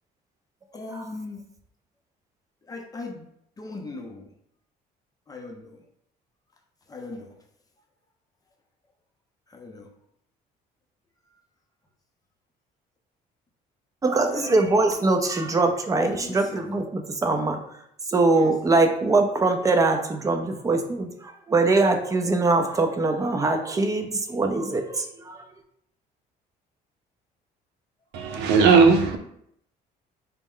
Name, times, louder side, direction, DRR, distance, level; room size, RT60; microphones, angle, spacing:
voice 1, 0.7-1.4 2.7-3.2 3.6-4.3 5.3-5.8 6.9-7.3 9.5-9.9 14.3-14.7 16.0-16.8 18.3-18.5, left 3 dB, 20° left, 0.6 m, -38 dB
voice 2, 14.0-25.4, right 3 dB, 20° right, 0.5 m, -23 dB
voice 3, 28.1-29.2, right 5 dB, 80° right, 0.6 m, -17 dB
4.2 x 2.1 x 3.7 m
cardioid pair, 110°, 17 cm